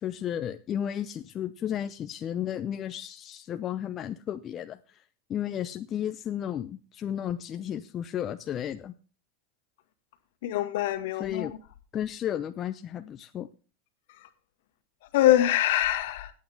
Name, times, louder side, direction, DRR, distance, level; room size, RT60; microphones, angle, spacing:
voice 1, 0.0-4.8 5.3-8.9 11.2-11.5 11.9-13.5, left 10 dB, 35° left, 0.7 m, -33 dB
voice 2, 10.4-11.5 15.1-16.3, left 13 dB, 70° left, 1.8 m, -24 dB
18.0 x 8.6 x 3.5 m
hypercardioid pair, 105°, 0 cm